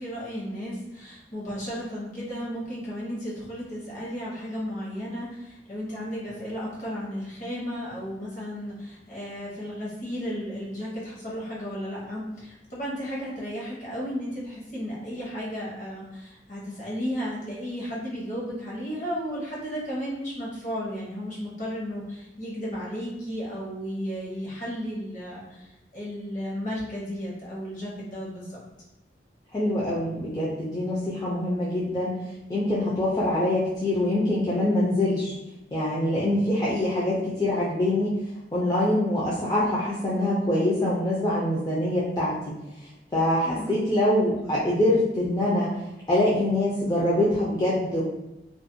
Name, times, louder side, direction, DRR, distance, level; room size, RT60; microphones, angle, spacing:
voice 1, 0.0-28.6 43.4-43.8, equal, 45° left, -6 dB, 0.9 m, -34 dB
voice 2, 29.5-32.1 32.5-35.3 35.7-38.2 38.5-42.5 43.1-45.7 46.1-48.0, left 1 dB, 20° left, -7 dB, 0.4 m, -24 dB
2.4 x 2.1 x 2.6 m, 0.98 s
head